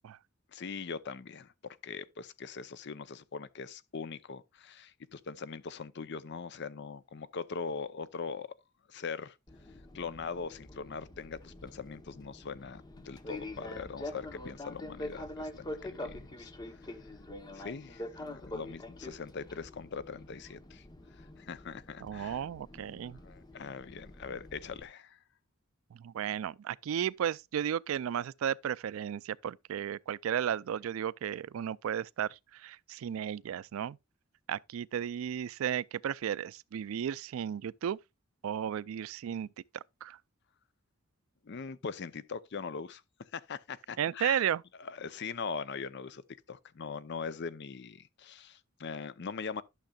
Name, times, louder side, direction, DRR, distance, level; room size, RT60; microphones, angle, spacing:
voice 1, 0.5-1.5 1.8-8.5 8.9-9.4 9.9-16.5 17.5-20.8 21.2-22.4 23.2-25.2 41.4-43.0 43.3-44.4 44.8-46.2 46.5-49.6, left 5 dB, 55° left, 0.6 m, -41 dB
Fixed-wing aircraft airplane, 9.5-24.8, left 1 dB, 20° left, 0.9 m, -45 dB
voice 2, 22.0-23.2 25.9-34.0 34.5-38.0 38.4-39.5 40.0-40.2 44.0-44.6, right 9 dB, 80° right, 0.3 m, -34 dB
11.5 x 6.5 x 2.3 m
head